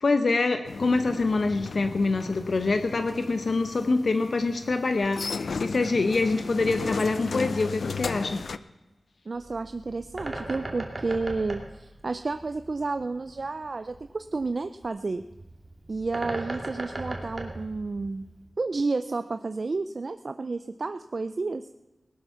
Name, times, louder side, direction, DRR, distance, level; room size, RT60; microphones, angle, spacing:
voice 1, 0.0-8.4, left 3 dB, 65° left, 8 dB, 0.9 m, -25 dB
sound 1, 0.7-8.6, left 4 dB, 80° left, 0.5 m, -35 dB
Bird, 9.3-18.5, right 2 dB, 35° right, 2.6 m, -39 dB
voice 2, 9.3-15.2 15.9-18.3 18.6-21.7, right 3 dB, 55° right, 10 dB, 0.5 m, -31 dB
18.5 x 12.0 x 5.7 m, 1.1 s
wide cardioid pair, 80°, 0 cm